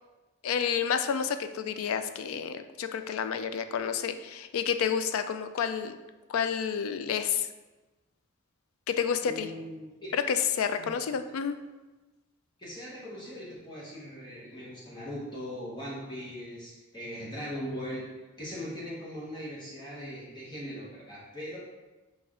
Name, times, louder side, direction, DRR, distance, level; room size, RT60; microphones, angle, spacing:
voice 1, 0.4-6.0 6.3-7.5 8.9-9.5 10.1-11.6, left 7 dB, 70° left, 9 dB, 0.3 m, -30 dB
voice 2, 9.2-10.1 10.7-10.9 12.6-18.1 18.4-21.6, equal, 20° left, -6 dB, 1.0 m, -40 dB
6.0 x 2.4 x 3.6 m, 1.2 s
head